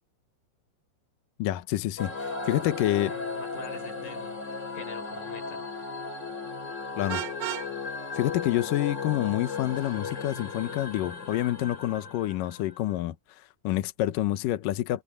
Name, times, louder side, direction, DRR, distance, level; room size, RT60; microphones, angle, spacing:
voice 1, 1.4-3.1 7.0-7.3 8.1-15.0, left 15 dB, 80° left, 2.0 m, -28 dB
sound 1, 2.0-12.9, left 4 dB, 25° left, 5.0 m, -36 dB
voice 2, 2.9-4.4 4.7-5.9, left 6 dB, 50° left, 6.2 m, -45 dB
Vehicle horn car horn honking, 7.1-7.7, right 19 dB, 80° right, 2.4 m, -33 dB
omnidirectional pair, 5.1 m